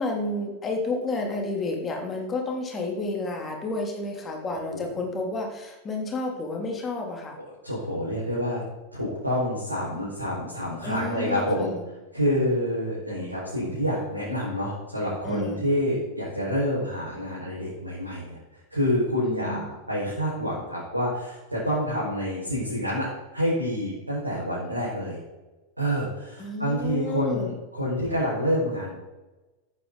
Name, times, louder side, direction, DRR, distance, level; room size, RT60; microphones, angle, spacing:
voice 1, 0.0-7.4 10.8-11.8 15.2-15.6 19.2-19.6 26.4-27.5, left 2 dB, 20° left, 1 dB, 3.1 m, -31 dB
voice 2, 7.6-8.6 8.9-11.7 12.1-18.3 18.7-23.1 23.3-25.2 25.8-28.9, equal, 85° right, -7 dB, 5.3 m, -27 dB
14.5 x 11.0 x 4.1 m, 1.1 s
figure-of-eight pair, 90°, 0 cm